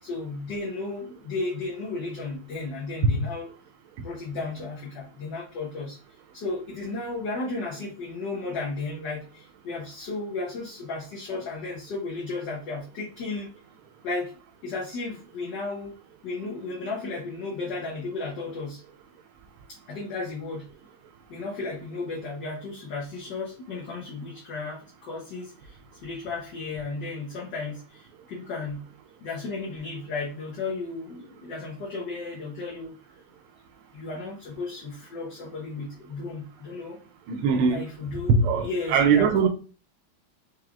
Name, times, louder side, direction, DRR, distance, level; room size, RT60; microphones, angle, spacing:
voice 1, 0.0-3.5 4.0-6.0 6.3-13.5 14.0-14.3 14.6-15.9 16.2-18.8 19.9-20.7 21.3-28.8 29.2-32.9 33.9-37.0 37.7-39.5, left 3 dB, 60° left, 1.4 m, -34 dB
voice 2, 37.3-37.8 38.4-39.5, right 6 dB, 90° right, 1.5 m, -22 dB
4.9 x 3.2 x 2.4 m
omnidirectional pair, 2.3 m